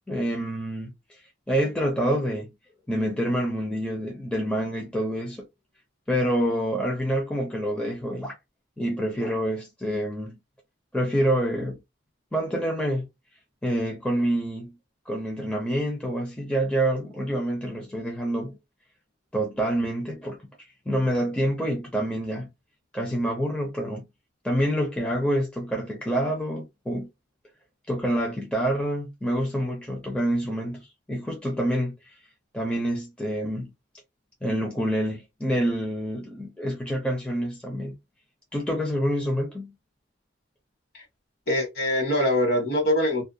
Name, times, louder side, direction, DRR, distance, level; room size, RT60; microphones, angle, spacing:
voice 1, 0.1-0.9 1.5-2.5 2.9-5.5 6.1-8.3 8.8-10.4 10.9-11.8 12.3-13.1 13.6-14.8 15.1-18.6 19.3-20.4 20.9-22.5 22.9-24.0 24.4-27.1 27.9-32.0 32.5-33.7 34.4-37.9 38.5-39.7, equal, 5° left, 0.5 m, -27 dB
voice 2, 41.5-43.2, left 1 dB, 55° left, 1.1 m, -23 dB
2.3 x 2.1 x 2.6 m
head